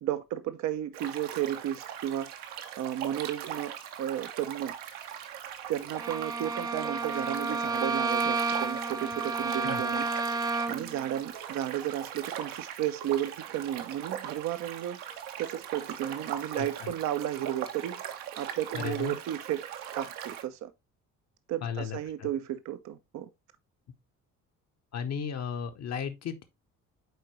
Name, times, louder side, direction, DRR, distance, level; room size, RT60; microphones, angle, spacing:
voice 1, 0.0-2.3 2.8-4.7 5.7-10.1 10.7-15.0 15.4-18.0 18.4-19.7 19.9-20.7 21.5-23.3, right 11 dB, 40° right, 0.7 m, -33 dB
sound 1, 0.9-20.4, right 9 dB, 55° right, 1.0 m, -40 dB
Bowed string instrument, 6.0-11.0, right 3 dB, 10° right, 0.3 m, -31 dB
voice 2, 16.6-16.9 18.7-19.2 21.6-22.3 24.9-26.4, left 7 dB, 35° left, 0.9 m, -35 dB
7.9 x 4.4 x 3.0 m
figure-of-eight pair, 50°, 44 cm